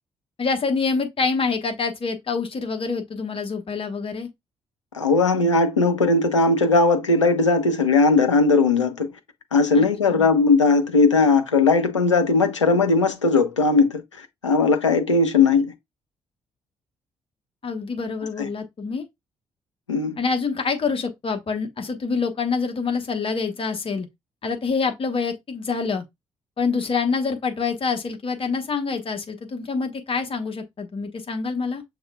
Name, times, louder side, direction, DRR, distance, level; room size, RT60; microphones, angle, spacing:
voice 1, 0.4-4.3 9.7-10.3 17.6-19.0 20.2-24.1 24.4-26.0 26.6-31.8, left 4 dB, 40° left, 1.2 m, -26 dB
voice 2, 4.9-9.1 9.5-14.0 14.4-15.7 19.9-20.2, left 3 dB, 85° left, 0.5 m, -18 dB
6.3 x 3.3 x 2.3 m
figure-of-eight pair, 40°, 15 cm